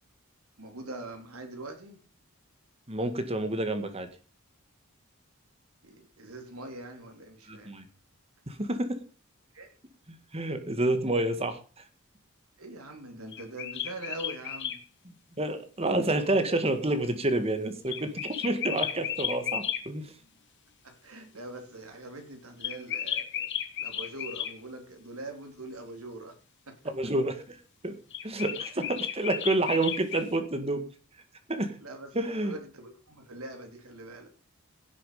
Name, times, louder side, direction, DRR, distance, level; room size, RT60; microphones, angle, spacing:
voice 1, 0.6-2.0 5.8-7.7 9.5-9.7 12.6-14.8 20.8-23.5 23.8-26.4 26.7-26.8 28.8-28.9 31.8-34.3, right 1 dB, 80° right, 4 dB, 3.6 m, -43 dB
voice 2, 2.9-4.1 7.5-7.8 8.5-9.0 10.1-11.6 15.1-20.1 26.9-27.6 27.8-27.9 28.2-30.8 31.5-31.8 32.1-32.5, right 2 dB, 25° right, 8 dB, 1.9 m, -29 dB
sound 1, 13.3-14.8 17.9-19.8 22.6-24.5 28.1-30.3, left 10 dB, 55° left, 1.6 m, -34 dB
16.5 x 7.6 x 5.2 m, 0.36 s
head